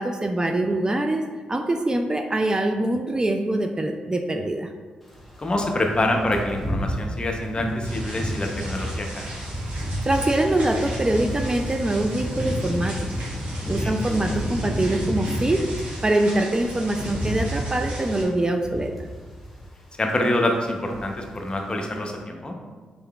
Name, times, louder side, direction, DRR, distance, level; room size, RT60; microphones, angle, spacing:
voice 1, 0.0-4.7 10.0-12.9 13.7-15.6 16.0-19.1, right 1 dB, 25° right, 4 dB, 0.3 m, -24 dB
sound 1, 5.1-16.0 16.4-19.8 20.0-20.3 20.6-21.4 21.7-21.9, equal, ahead, 1.1 m, -31 dB
voice 2, 5.4-9.3 13.8-13.9 20.0-22.6, left 1 dB, 30° left, 2 dB, 0.7 m, -26 dB
sound 2, 7.8-18.2, right 1 dB, 60° right, 1.3 m, -38 dB
3.7 x 3.5 x 2.3 m, 1.4 s
hypercardioid pair, 45°, 3 cm